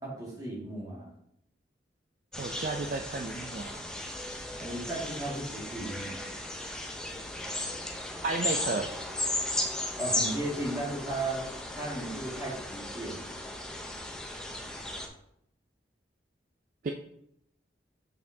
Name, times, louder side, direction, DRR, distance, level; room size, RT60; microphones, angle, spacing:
voice 1, 0.0-1.1 4.5-6.3 10.0-11.5 11.7-13.3, right 1 dB, 20° right, -5 dB, 1.9 m, -35 dB
sound 1, 2.3-15.1, left 1 dB, 5° left, 0.6 m, -36 dB
voice 2, 2.4-3.8 8.2-8.9 16.8-16.9, right 3 dB, 45° right, 4 dB, 0.4 m, -33 dB
6.6 x 5.3 x 2.7 m, 0.74 s
head